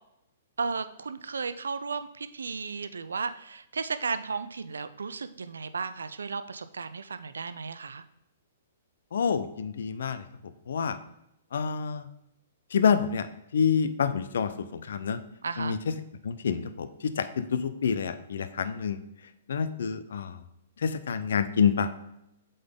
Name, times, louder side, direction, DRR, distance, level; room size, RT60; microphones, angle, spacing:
voice 1, 0.6-8.0 15.4-15.8, right 5 dB, 80° right, 12 dB, 0.4 m, -34 dB
voice 2, 9.1-10.2 10.7-11.0 11.5-12.1 12.7-13.3 13.5-15.2 15.6-15.9 16.2-16.9 17.2-19.0 19.5-20.4 20.8-21.9, left 6 dB, 70° left, 11 dB, 0.5 m, -27 dB
7.7 x 3.9 x 3.7 m, 0.81 s
hypercardioid pair, 125°, 0 cm